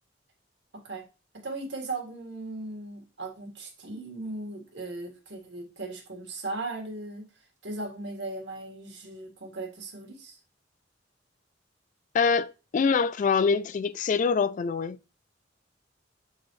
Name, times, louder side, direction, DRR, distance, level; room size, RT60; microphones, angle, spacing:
voice 1, 1.4-7.2 7.6-10.4, right 2 dB, 70° right, 1.9 m, -37 dB
voice 2, 12.1-15.0, left 5 dB, 45° left, 0.3 m, -25 dB
7.4 x 4.1 x 3.1 m
head